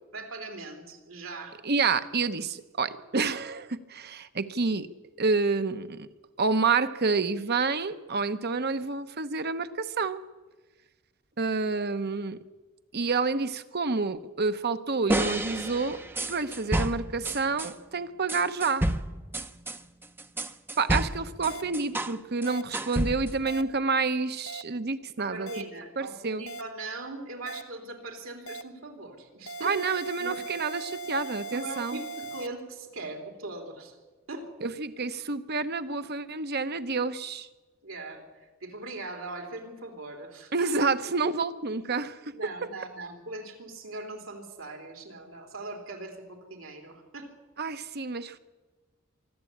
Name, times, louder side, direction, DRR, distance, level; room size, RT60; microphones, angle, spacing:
voice 1, 0.1-1.6 25.2-29.8 30.2-30.4 31.5-34.0 34.3-34.5 37.8-38.2 38.6-40.7 42.3-47.3, right 2 dB, 80° right, 3 dB, 3.7 m, -40 dB
voice 2, 1.6-4.9 5.2-6.1 6.4-10.2 11.4-12.4 12.9-16.0 16.3-18.9 20.8-25.6 26.0-26.5 29.6-32.0 34.6-37.5 40.5-42.3 42.6-42.7 47.6-48.4, right 4 dB, 55° right, 11 dB, 1.0 m, -28 dB
sound 1, 15.1-17.7 18.3-22.2 22.4-23.4, right 1 dB, 10° right, 0.7 m, -30 dB
sound 2, 21.5-21.6 22.5-22.6 23.5-23.6 24.5-24.6 25.5-25.6 26.5-26.6 27.5-27.6 28.5-28.6 29.5-32.5, right 3 dB, 75° left, 0.9 m, -39 dB
25.0 x 12.0 x 8.7 m, 1.2 s
head